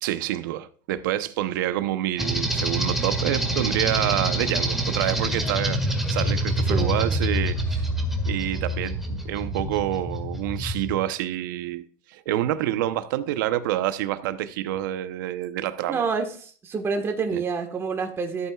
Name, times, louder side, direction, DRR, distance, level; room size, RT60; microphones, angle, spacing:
voice 1, 0.0-7.9 8.3-16.0 17.3-17.4, right 13 dB, 80° right, 0.8 m, -28 dB
sound 1, 2.2-10.9, right 1 dB, ahead, 1.9 m, -26 dB
voice 2, 6.7-7.2 15.9-18.5, right 5 dB, 25° right, 1.5 m, -28 dB
14.0 x 8.5 x 2.4 m
supercardioid pair, 130°, 10 cm